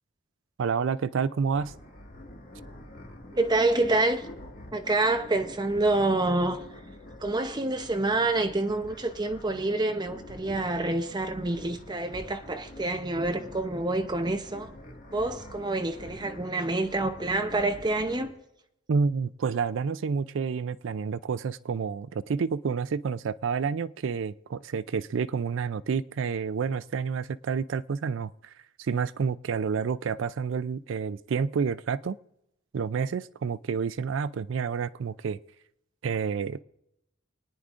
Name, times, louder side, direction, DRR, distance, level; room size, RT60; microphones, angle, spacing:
voice 1, 0.6-1.7 18.9-28.3 28.8-32.2 32.7-35.4 36.0-36.6, right 5 dB, 65° right, 0.4 m, -29 dB
sound 1, 1.5-18.3, left 1 dB, 45° left, 1.8 m, -46 dB
voice 2, 3.3-4.3 4.7-6.6 7.2-14.7 15.1-18.3, right 2 dB, 20° right, 0.7 m, -27 dB
28.5 x 9.6 x 2.5 m
head